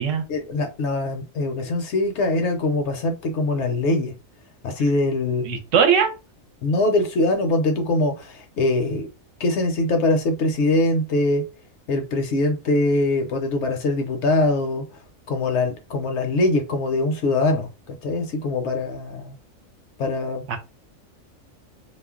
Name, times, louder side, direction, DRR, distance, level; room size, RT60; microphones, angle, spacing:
voice 1, 0.3-4.1 4.6-5.6 6.6-9.1 9.4-11.4 11.9-14.8 15.3-19.3 20.0-20.6, left 2 dB, 65° left, 0.8 m, -23 dB
voice 2, 5.5-6.1 20.5-20.6, right 7 dB, 70° right, 0.9 m, -19 dB
2.4 x 2.1 x 3.5 m
omnidirectional pair, 1.4 m